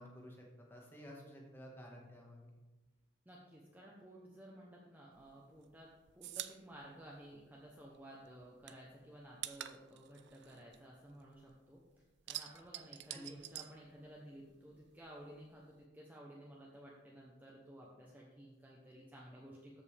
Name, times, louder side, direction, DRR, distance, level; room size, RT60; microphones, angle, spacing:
voice 1, 0.0-2.5 13.1-13.3, equal, 10° left, -2 dB, 1.5 m, -52 dB
voice 2, 3.3-11.8 12.3-19.8, right 1 dB, 10° right, -4 dB, 0.8 m, -55 dB
sound 1, 5.2-8.0 8.3-11.6 11.9-14.5 14.7-15.8, right 13 dB, 55° right, 0.4 m, -48 dB
14.0 x 5.3 x 3.4 m, 1.2 s
head